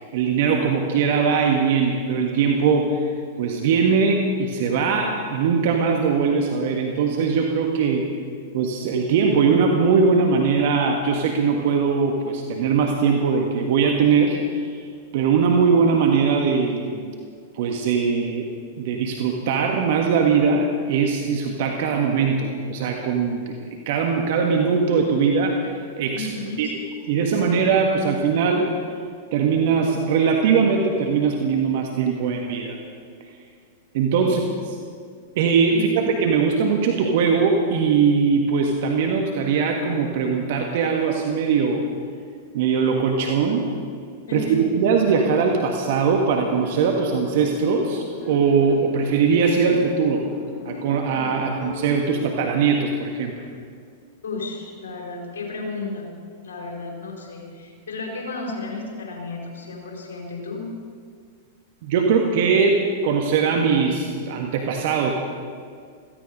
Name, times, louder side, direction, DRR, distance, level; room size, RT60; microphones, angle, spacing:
voice 1, 0.0-3.1 3.4-8.1 8.5-14.8 15.1-17.1 17.5-18.5 18.8-23.6 23.8-26.3 26.6-26.7 27.0-28.7 29.3-32.8 33.9-34.4 35.3-41.8 42.5-43.7 44.3-50.2 50.6-53.3 61.8-65.1, right 5 dB, 55° right, 2 dB, 1.6 m, -21 dB
voice 2, 26.1-26.7 34.2-34.4 35.7-36.0 44.3-44.6 51.3-51.4 54.2-56.2 56.4-60.7, left 3 dB, 70° left, 0 dB, 4.3 m, -33 dB
sound 1, 45.0-53.5, left 4 dB, 35° left, 2.0 m, -39 dB
16.5 x 15.5 x 5.3 m, 2.2 s
figure-of-eight pair, 100°, 0 cm